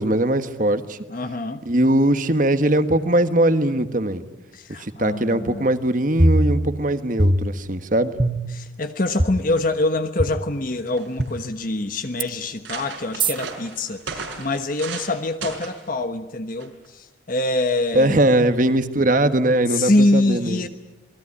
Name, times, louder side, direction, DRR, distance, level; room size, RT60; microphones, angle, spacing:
voice 1, 0.0-1.0 1.6-4.2 4.8-8.1 17.9-20.6, right 1 dB, 40° right, 10 dB, 1.5 m, -20 dB
voice 2, 1.1-1.6 4.5-5.7 8.5-18.2 19.7-20.7, left 2 dB, 45° left, 8 dB, 1.2 m, -24 dB
sound 1, 6.2-6.9 7.2-7.8 8.2-8.7 9.2-9.3 10.2-10.3 11.2-11.3 12.2-12.3 13.2-13.3, right 1 dB, 25° right, 1.1 m, -20 dB
sound 2, 10.5-10.6 10.9-11.5 12.1-12.2 12.4-15.1 15.4-15.8 16.6-16.9, right 5 dB, 80° right, 5.5 m, -35 dB
27.5 x 21.0 x 9.9 m, 1.0 s
head